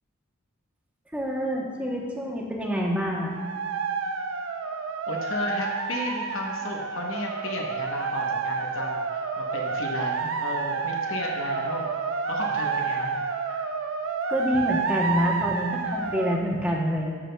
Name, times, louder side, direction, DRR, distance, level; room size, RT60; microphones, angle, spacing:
voice 1, 1.1-3.3 14.3-17.1, equal, 5° right, -2 dB, 0.8 m, -27 dB
sound 1, 3.2-16.4, right 5 dB, 65° right, 0.5 m, -29 dB
voice 2, 5.1-11.9 12.3-13.2 13.5-13.6, left 1 dB, 70° left, 0 dB, 0.9 m, -33 dB
10.5 x 6.8 x 2.2 m, 2.1 s
head